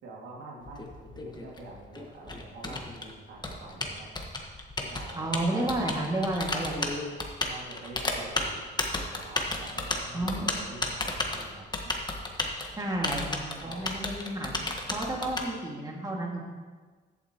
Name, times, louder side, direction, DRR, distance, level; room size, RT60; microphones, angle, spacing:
voice 1, 0.0-4.2 4.8-5.9 7.4-11.9 13.6-13.9, right 2 dB, 80° right, -3 dB, 2.3 m, -46 dB
Typing, 0.6-15.4, left 2 dB, 20° left, 1.3 m, -33 dB
voice 2, 5.1-7.0 10.1-10.5 12.7-14.5 14.9-16.4, right 1 dB, 20° right, -2 dB, 2.0 m, -31 dB
14.0 x 8.2 x 3.0 m, 1.5 s
cardioid pair, 90°, 20 cm